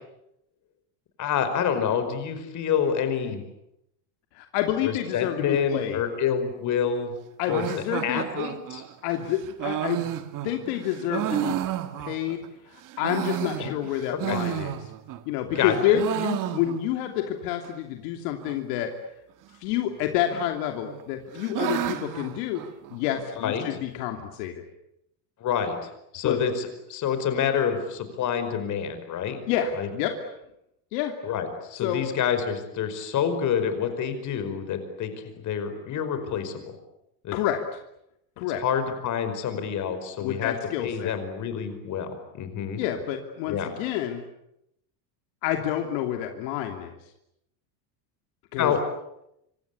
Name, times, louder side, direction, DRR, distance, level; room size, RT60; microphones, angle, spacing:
voice 1, 1.2-3.4 4.8-7.1 7.5-7.6 8.0-8.8 13.6-13.7 14.3-14.4 15.6-15.7 23.4-23.6 25.4-25.8 26.1-29.4 29.8-29.9 31.2-35.1 35.4-36.6 37.2-37.4 38.6-40.5 40.8-42.8 43.5-43.7 48.6-48.8, left 8 dB, 35° left, 9 dB, 5.2 m, -27 dB
voice 2, 4.3-6.0 7.4-8.2 9.0-10.1 10.4-11.7 12.0-12.4 13.0-14.9 15.3-18.9 19.6-22.6 22.9-24.6 26.2-26.4 29.5-30.2 30.9-31.1 31.8-32.1 37.3-37.6 38.4-38.6 40.2-41.1 42.8-44.2 45.4-46.9 48.5-48.7, left 11 dB, 70° left, 4 dB, 3.0 m, -28 dB
sound 1, 7.5-12.5 12.9-15.2 15.5-17.1 17.3-17.4 17.6-17.7 18.4-18.8 19.9-20.5 20.8-23.2, right 12 dB, 40° right, 1.8 m, -32 dB
26.5 x 25.5 x 8.4 m, 0.81 s
cardioid pair, 155°, 50 cm